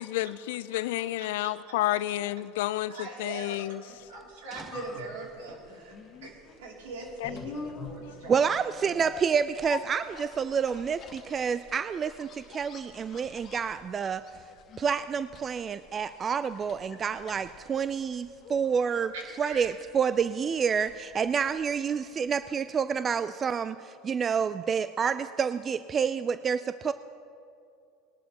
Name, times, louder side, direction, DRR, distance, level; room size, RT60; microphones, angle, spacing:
voice 1, 0.0-3.8 7.2-7.3, left 15 dB, 75° left, 17 dB, 0.4 m, -30 dB
voice 2, 2.9-9.0 19.1-19.7 22.0-22.1, right 3 dB, 80° right, -1 dB, 2.7 m, -42 dB
sound 1, 4.1-22.2 22.4-22.5, left 5 dB, 40° left, 1.6 m, -46 dB
voice 3, 8.3-14.3 14.8-19.1 19.4-26.9, right 6 dB, 30° right, 13 dB, 0.3 m, -28 dB
20.0 x 11.0 x 2.9 m, 2.5 s
hypercardioid pair, 85°, 0 cm